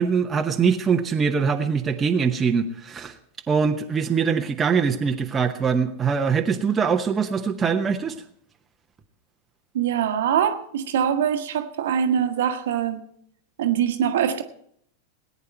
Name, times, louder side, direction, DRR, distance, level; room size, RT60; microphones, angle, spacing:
voice 1, 0.0-3.1 3.5-8.2, right 6 dB, 20° right, 0.9 m, -23 dB
voice 2, 9.7-13.0 13.6-14.4, right 9 dB, 60° right, 1.2 m, -23 dB
18.5 x 9.6 x 4.4 m
figure-of-eight pair, 90°, 0 cm